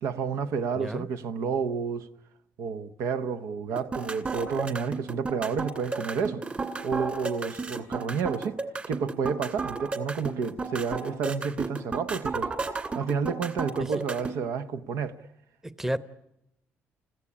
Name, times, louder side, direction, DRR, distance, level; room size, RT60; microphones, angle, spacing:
voice 1, 0.0-2.1 2.6-6.4 6.8-8.6 8.9-12.5 12.9-15.2, right 6 dB, 85° right, 1.1 m, -30 dB
voice 2, 0.7-1.1 13.8-14.0 15.6-16.0, right 1 dB, 10° right, 0.9 m, -32 dB
sound 1, 3.8-14.4, right 3 dB, 25° right, 2.4 m, -32 dB
29.5 x 15.5 x 9.8 m
cardioid pair, 110°, 5 cm